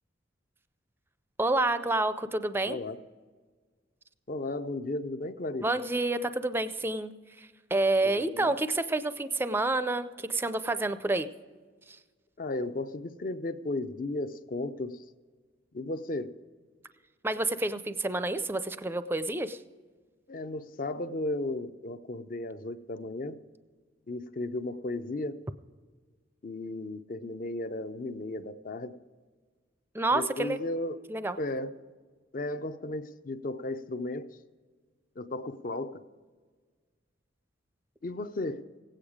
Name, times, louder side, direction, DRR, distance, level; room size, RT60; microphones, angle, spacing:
voice 1, 1.4-2.8 5.6-11.3 11.9-12.0 17.2-19.6 29.9-30.6 31.1-31.4, right 2 dB, 10° right, 12 dB, 0.4 m, -29 dB
voice 2, 2.7-3.0 4.3-5.7 8.0-8.5 12.4-15.0 15.7-16.3 20.3-23.4 24.1-25.4 26.4-29.0 30.1-31.0 31.4-31.7 32.3-34.3 35.2-36.0 38.0-38.7, left 2 dB, 45° left, 12 dB, 0.5 m, -35 dB
16.5 x 8.9 x 5.0 m, 1.5 s
head